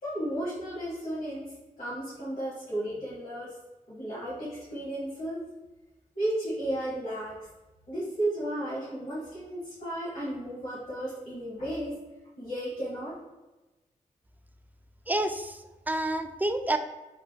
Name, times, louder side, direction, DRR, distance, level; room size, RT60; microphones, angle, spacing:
voice 1, 0.0-3.6 3.9-5.5 6.1-7.5 7.9-12.0 12.4-13.2, right 1 dB, 70° left, -9 dB, 1.4 m, -34 dB
voice 2, 15.1-16.8, right 1 dB, 10° right, 7 dB, 0.3 m, -29 dB
3.2 x 2.3 x 3.8 m, 1.1 s
cardioid pair, 50°, 15 cm